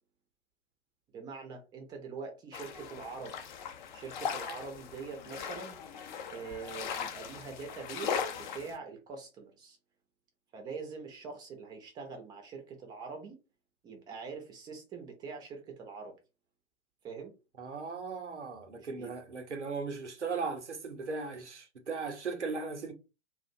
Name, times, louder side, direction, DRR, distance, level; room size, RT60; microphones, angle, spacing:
voice 1, 1.1-3.3 3.9-5.8 6.2-9.8 10.5-13.4 13.8-16.2 17.0-17.3 18.7-19.1, right 5 dB, 10° right, 0.5 m, -44 dB
sound 1, 2.5-8.8, left 7 dB, 45° left, 0.5 m, -39 dB
voice 2, 17.6-22.9, right 4 dB, 90° right, 0.7 m, -37 dB
2.4 x 2.1 x 2.5 m
figure-of-eight pair, 105°, 34 cm